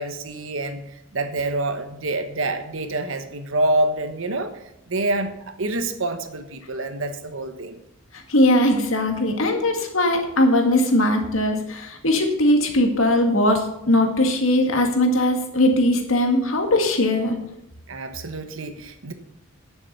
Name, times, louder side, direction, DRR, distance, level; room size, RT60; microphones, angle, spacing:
voice 1, 0.0-4.5 4.9-7.8 17.9-19.1, right 2 dB, 75° right, 8 dB, 1.2 m, -27 dB
voice 2, 8.3-17.4, left 1 dB, 80° left, 3 dB, 1.9 m, -20 dB
10.0 x 7.0 x 6.7 m, 0.82 s
head